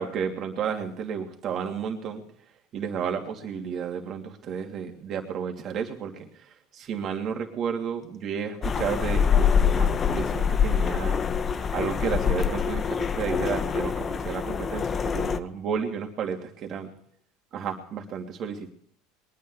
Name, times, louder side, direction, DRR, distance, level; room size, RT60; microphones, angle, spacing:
voice 1, 0.0-2.2 2.7-11.2 11.7-16.9 17.5-18.7, right 7 dB, 45° right, 3 dB, 2.8 m, -32 dB
sound 1, 8.6-15.4, left 7 dB, 30° left, 0.9 m, -25 dB
22.5 x 9.6 x 4.9 m, 0.66 s
hypercardioid pair, 95°, 0 cm